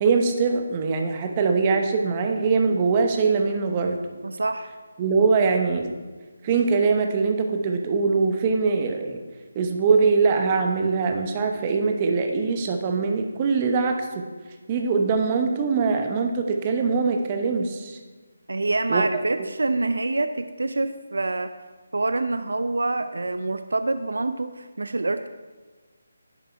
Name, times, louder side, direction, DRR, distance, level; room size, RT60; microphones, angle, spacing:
voice 1, 0.0-4.0 5.0-5.9 6.4-9.2 9.5-14.2 14.7-18.0 18.9-19.0, right 4 dB, 25° right, 4 dB, 1.0 m, -22 dB
voice 2, 4.2-4.7 18.5-21.5 21.9-25.3, right 2 dB, 80° right, 10 dB, 0.6 m, -26 dB
10.5 x 8.0 x 4.6 m, 1.3 s
figure-of-eight pair, 160°, 0 cm